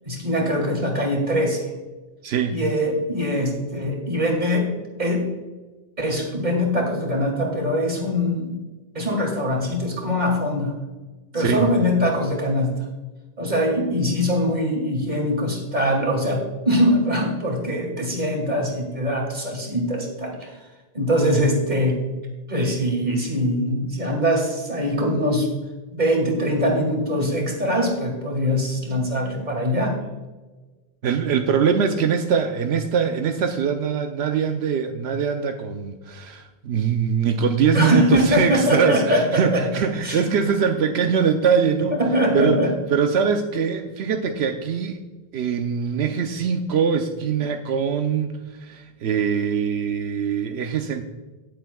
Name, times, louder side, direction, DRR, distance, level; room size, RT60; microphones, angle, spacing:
voice 1, 0.0-1.6 2.5-4.7 5.0-5.3 6.0-8.5 8.9-10.7 11.3-12.7 13.4-20.5 20.9-22.0 22.5-25.5 25.9-30.0 37.7-39.6 40.0-40.2 42.0-42.7, equal, 45° right, 0 dB, 2.5 m, -22 dB
voice 2, 2.2-2.6 11.4-11.7 31.0-42.0 42.3-42.6 42.9-45.0 45.3-51.0, right 6 dB, 85° right, 5 dB, 0.9 m, -22 dB
18.0 x 7.9 x 2.3 m, 1.2 s
omnidirectional pair, 1.1 m